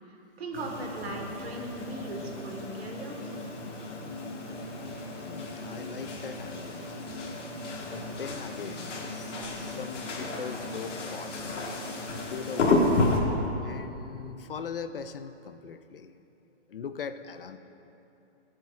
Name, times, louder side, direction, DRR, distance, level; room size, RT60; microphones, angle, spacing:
voice 1, 0.4-3.2, right 2 dB, 55° right, 1 dB, 1.7 m, -38 dB
sound 1, 0.5-13.2, left 2 dB, 75° left, 1.8 m, -32 dB
voice 2, 5.3-7.1 7.8-11.6 12.3-12.9 13.6-16.2 16.7-17.6, left 6 dB, 50° left, 10 dB, 0.4 m, -41 dB
22.0 x 7.6 x 2.4 m, 3.0 s
hypercardioid pair, 180°, 36 cm